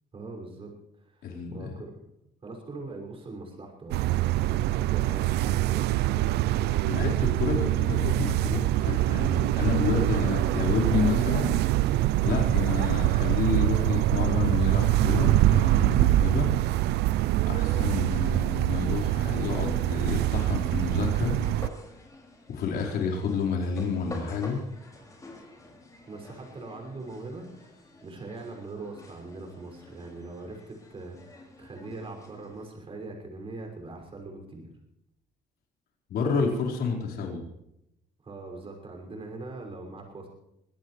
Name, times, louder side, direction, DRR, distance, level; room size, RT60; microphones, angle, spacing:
voice 1, 0.1-2.1 2.4-6.8 17.6-17.8 26.1-34.7 38.2-40.3, right 3 dB, 35° right, 1 dB, 6.2 m, -42 dB
voice 2, 1.2-1.7 6.8-11.6 12.2-16.5 17.5-21.3 22.5-24.6 36.1-37.4, left 5 dB, 70° left, -1 dB, 4.7 m, -29 dB
sound 1, 3.9-21.7, right 15 dB, 80° right, 0.5 m, -24 dB
sound 2, 20.0-32.7, left 2 dB, 20° left, 5.7 m, -49 dB
24.0 x 17.0 x 3.3 m, 0.82 s
cardioid pair, 110°, 17 cm